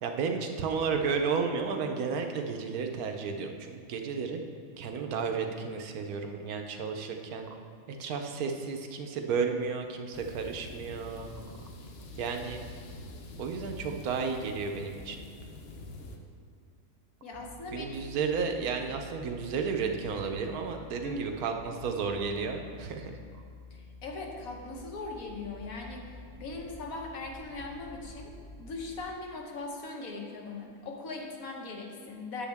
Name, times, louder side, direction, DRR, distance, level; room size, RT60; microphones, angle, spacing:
voice 1, 0.0-4.4 4.8-7.5 7.9-11.4 12.2-12.6 13.4-15.3 17.7-23.4, right 5 dB, 80° right, 4 dB, 1.2 m, -32 dB
sound 1, 10.1-16.2, left 2 dB, 50° left, 0.8 m, -45 dB
voice 2, 17.2-17.9 21.0-21.3 23.7-28.3 28.6-32.5, left 3 dB, 70° left, 1 dB, 1.5 m, -40 dB
sound 2, 17.3-29.0, left 1 dB, 20° right, 1.7 m, -50 dB
9.2 x 7.6 x 3.5 m, 2.3 s
omnidirectional pair, 1.6 m